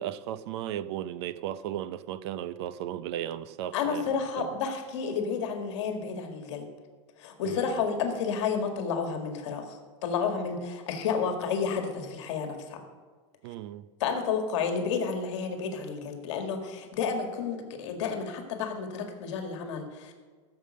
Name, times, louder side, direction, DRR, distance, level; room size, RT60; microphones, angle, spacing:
voice 1, 0.0-4.0 4.4-4.5 7.4-7.8 13.4-13.9, right 11 dB, 55° right, 0.6 m, -35 dB
voice 2, 3.7-6.6 7.2-12.8 14.0-20.1, left 6 dB, 65° left, 2.0 m, -31 dB
14.5 x 7.1 x 6.5 m
supercardioid pair, 170°, 16 cm